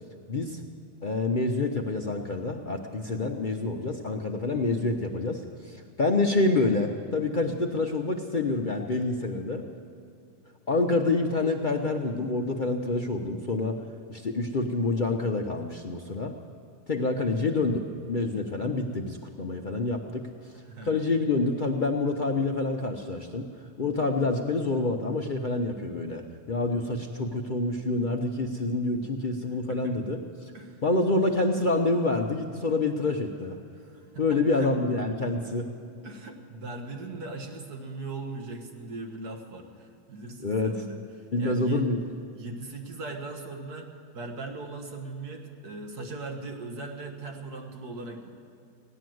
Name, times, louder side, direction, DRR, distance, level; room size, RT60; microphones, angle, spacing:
voice 1, 0.3-0.6 1.0-9.6 10.7-13.8 14.1-16.3 16.9-20.2 20.8-23.5 23.8-30.5 30.8-33.6 34.2-35.7 40.4-40.9 41.3-42.0, left 2 dB, 45° left, 3 dB, 0.7 m, -27 dB
voice 2, 20.7-21.1 29.7-30.0 30.5-30.8 33.7-33.8 34.1-34.7 36.0-41.0 41.4-41.8 42.3-48.3, right 3 dB, 75° right, 3 dB, 2.0 m, -39 dB
16.5 x 10.5 x 7.7 m, 2.6 s
omnidirectional pair, 1.6 m